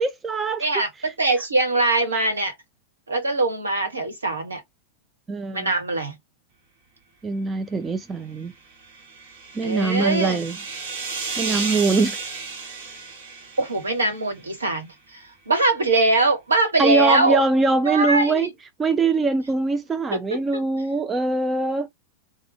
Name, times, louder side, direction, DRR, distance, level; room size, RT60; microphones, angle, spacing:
voice 1, 0.0-0.7 5.3-5.7 7.2-8.5 9.5-10.6 11.4-12.2 16.8-18.5 18.8-21.9, right 3 dB, 15° right, 0.3 m, -22 dB
voice 2, 0.6-2.5 3.1-4.6 5.5-6.1 9.6-10.4 13.6-17.4 17.8-18.5 20.1-20.2, right 2 dB, 75° right, 1.1 m, -22 dB
sound 1, 8.7-14.3, right 4 dB, 50° right, 1.0 m, -33 dB
3.2 x 2.1 x 3.3 m
figure-of-eight pair, 90°, 0 cm